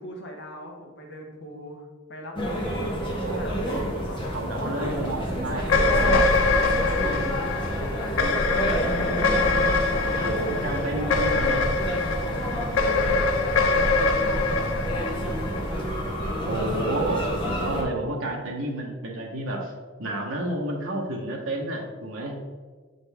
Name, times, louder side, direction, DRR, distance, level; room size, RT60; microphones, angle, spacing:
voice 1, 0.0-2.9 3.2-6.2 6.8-9.5 12.8-16.0, left 1 dB, 55° left, 1 dB, 1.1 m, -40 dB
sound 1, 2.3-17.8, equal, 25° left, 1.1 m, -29 dB
voice 2, 3.0-3.4 4.3-5.7 6.6-7.3 8.2-8.3 10.0-11.6 12.4-12.6 16.3-19.7 20.0-22.3, right 1 dB, 80° right, -1 dB, 1.0 m, -31 dB
sound 2, 5.6-16.1, left 3 dB, 85° left, 0.6 m, -24 dB
7.1 x 3.9 x 3.4 m, 1.5 s
head